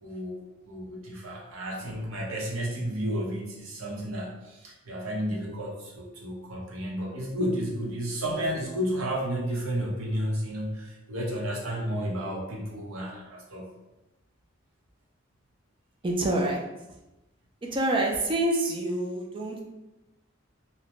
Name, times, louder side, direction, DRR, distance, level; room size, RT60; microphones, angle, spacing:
voice 1, 0.0-13.7, equal, 85° right, -2 dB, 0.7 m, -32 dB
voice 2, 16.0-16.6 17.7-19.6, right 1 dB, 25° right, 1 dB, 0.4 m, -26 dB
2.6 x 2.1 x 2.9 m, 0.97 s
head